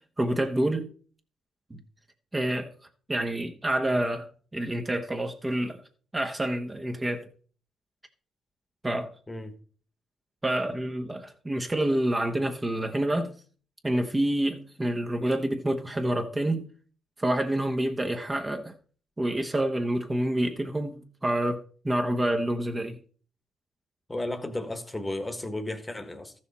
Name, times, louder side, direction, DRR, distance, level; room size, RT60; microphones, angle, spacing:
voice 1, 0.2-0.9 1.7-1.8 2.3-2.7 3.1-5.8 6.1-7.2 8.8-9.1 10.4-13.3 13.8-16.7 17.2-18.7 19.2-23.0, right 1 dB, 20° right, 1.0 m, -28 dB
voice 2, 24.1-26.3, left 1 dB, 15° left, 1.3 m, -34 dB
13.5 x 6.4 x 4.2 m
cardioid pair, 90°, 0 cm